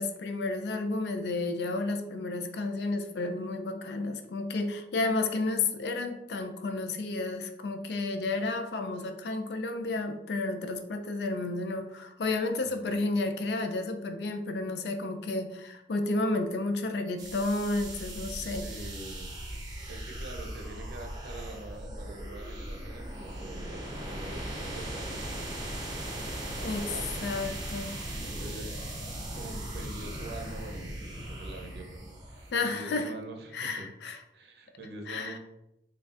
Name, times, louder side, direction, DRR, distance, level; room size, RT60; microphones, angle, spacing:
voice 1, 0.0-18.6 26.6-26.9 27.2-28.0 32.5-33.1 33.5-34.2 35.1-35.4, left 2 dB, 65° left, 7 dB, 0.4 m, -31 dB
voice 2, 12.6-13.0 18.6-19.3 19.9-25.4 26.6-27.2 28.2-28.9 29.3-33.9 34.3-35.4, right 2 dB, 65° right, 3 dB, 0.6 m, -45 dB
sound 1, 17.2-32.5, right 1 dB, 20° right, 0.6 m, -38 dB
3.9 x 3.2 x 2.4 m, 0.85 s
head